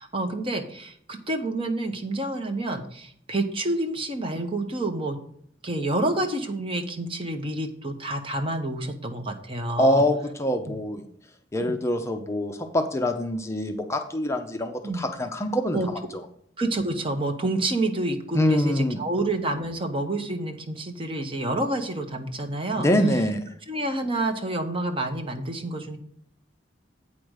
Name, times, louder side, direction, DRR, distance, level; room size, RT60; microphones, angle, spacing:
voice 1, 0.0-5.2 5.6-10.0 10.7-10.8 11.6-11.8 14.8-15.0 15.7-15.9 16.6-22.9 23.7-26.0, right 2 dB, 30° right, 5 dB, 1.1 m, -28 dB
voice 2, 9.8-11.0 11.5-15.8 18.3-19.0 22.8-23.5, left 1 dB, 15° left, 5 dB, 0.6 m, -24 dB
8.5 x 5.1 x 6.3 m, 0.67 s
head